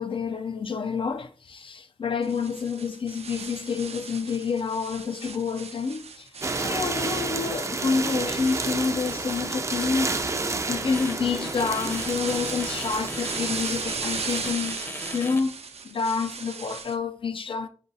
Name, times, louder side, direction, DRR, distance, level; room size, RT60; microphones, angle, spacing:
voice 1, 0.0-6.3 6.6-10.4 10.7-14.8 15.1-15.6 15.8-17.7, left 5 dB, 55° left, 0.4 m, -28 dB
sound 1, 2.2-17.0, right 5 dB, 75° right, 0.5 m, -37 dB
sound 2, 6.4-14.5, right 3 dB, 30° right, 0.4 m, -30 dB
sound 3, 10.9-11.1 11.4-15.4, left 1 dB, 20° left, 0.7 m, -38 dB
5.1 x 2.3 x 3.9 m
wide cardioid pair, 100°, 11 cm